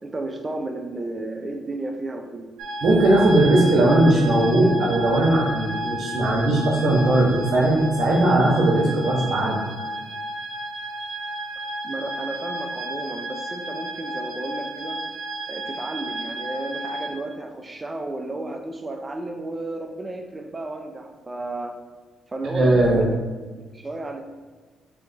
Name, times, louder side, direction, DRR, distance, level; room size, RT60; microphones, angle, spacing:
voice 1, 0.0-2.5 11.8-15.0 15.5-21.8 22.3-23.0 23.6-24.2, right 2 dB, 25° right, 4 dB, 0.5 m, -33 dB
sound 1, 2.6-17.1, right 1 dB, 90° right, 0.6 m, -32 dB
voice 2, 2.8-9.7 22.4-23.1, right 1 dB, 60° right, -4 dB, 0.9 m, -19 dB
3.3 x 2.9 x 4.0 m, 1.4 s
cardioid pair, 90°, 0 cm